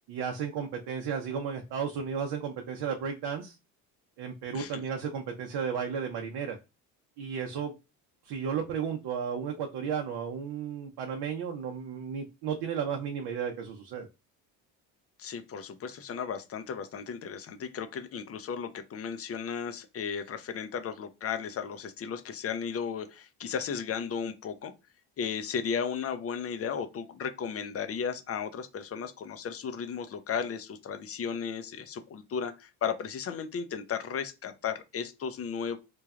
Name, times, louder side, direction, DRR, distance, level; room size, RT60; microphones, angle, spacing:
voice 1, 0.1-3.6 4.2-6.6 7.2-7.7 8.2-14.1, right 7 dB, 60° right, 0.7 m, -33 dB
voice 2, 15.2-24.7 25.2-35.8, left 7 dB, 35° left, 0.5 m, -35 dB
3.2 x 2.2 x 2.4 m
supercardioid pair, 85°, 45 cm